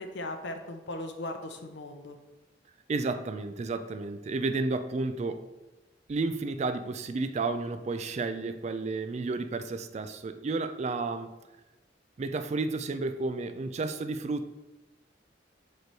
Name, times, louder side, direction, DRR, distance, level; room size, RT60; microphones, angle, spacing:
voice 1, 0.0-2.2, left 1 dB, 75° left, 5 dB, 0.6 m, -38 dB
voice 2, 2.9-5.5 6.1-11.3 12.2-14.5, right 3 dB, 40° right, 10 dB, 0.3 m, -32 dB
6.6 x 3.2 x 4.6 m, 1.0 s
head